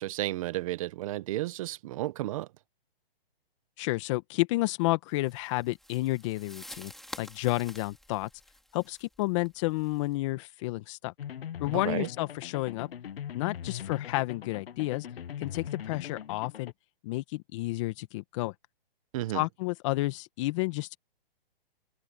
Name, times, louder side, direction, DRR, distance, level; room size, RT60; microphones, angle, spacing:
voice 1, 0.0-2.5 11.7-12.1 19.1-19.4, right 16 dB, 35° right, 1.0 m, -32 dB
voice 2, 3.8-6.9 7.2-8.3 8.7-11.1 11.6-12.9 13.3-15.1 15.4-16.7 17.0-18.5 19.3-21.0, left 20 dB, 30° left, 1.6 m, -31 dB
sound 1, 5.2-10.1, left 1 dB, ahead, 3.2 m, -49 dB
sound 2, 11.2-16.7, left 9 dB, 75° left, 1.2 m, -40 dB
hypercardioid pair, 155°, 30 cm